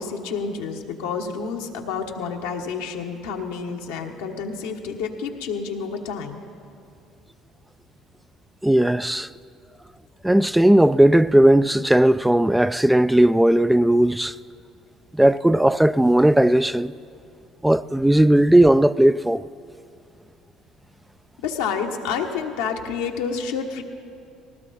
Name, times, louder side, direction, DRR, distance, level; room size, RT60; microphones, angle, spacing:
voice 1, 0.0-6.4 21.4-23.8, left 6 dB, 90° left, 1.3 m, -29 dB
voice 2, 8.6-9.3 10.2-14.3 15.1-16.9 17.6-19.4, right 1 dB, 5° right, 0.3 m, -17 dB
19.5 x 17.0 x 4.2 m
supercardioid pair, 75°, 0 cm